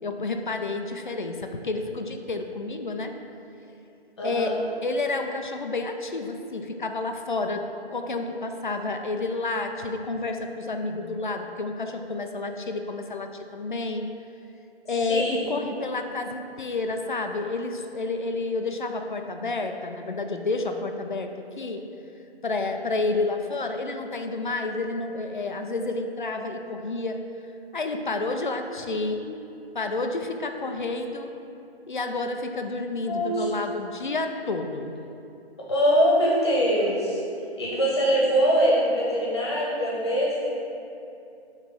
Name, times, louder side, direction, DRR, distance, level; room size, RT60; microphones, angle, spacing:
voice 1, 0.0-3.1 4.2-4.5 4.8-7.6 7.9-14.1 14.9-21.8 22.4-27.2 27.7-29.2 29.7-31.3 31.9-34.9, left 3 dB, 50° left, 5 dB, 0.5 m, -30 dB
voice 2, 4.2-4.6 15.1-15.5 28.8-29.2 33.1-33.5 35.7-37.2 37.6-40.5, equal, 25° left, -5 dB, 1.2 m, -23 dB
7.1 x 3.3 x 6.1 m, 2.7 s
figure-of-eight pair, 165°, 32 cm